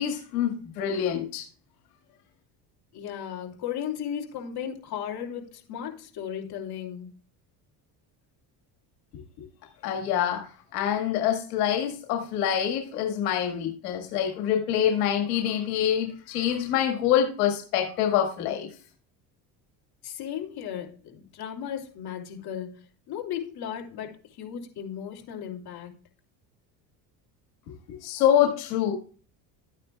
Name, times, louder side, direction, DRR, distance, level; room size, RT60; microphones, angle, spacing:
voice 1, 0.0-1.5 9.8-18.7 27.9-28.9, left 9 dB, 90° left, 1.9 m, -26 dB
voice 2, 2.9-7.1 20.0-22.8 23.1-25.9, left 9 dB, 55° left, 2.9 m, -35 dB
13.0 x 9.2 x 2.3 m
supercardioid pair, 90°, 45 cm